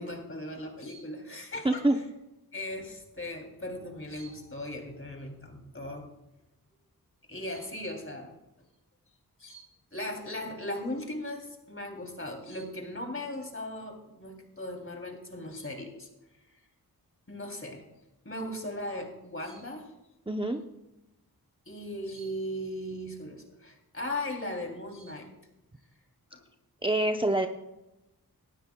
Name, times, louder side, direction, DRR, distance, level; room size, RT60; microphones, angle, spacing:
voice 1, 0.0-2.0 2.5-6.1 7.3-8.3 9.4-16.1 17.3-17.8 18.2-19.9 21.7-25.3 26.3-26.4, left 1 dB, 35° left, 3 dB, 3.1 m, -38 dB
voice 2, 1.6-2.0 20.3-20.6 26.8-27.5, right 1 dB, 15° right, 4 dB, 0.7 m, -25 dB
18.0 x 13.0 x 2.3 m, 0.94 s
wide cardioid pair, 50°, 37 cm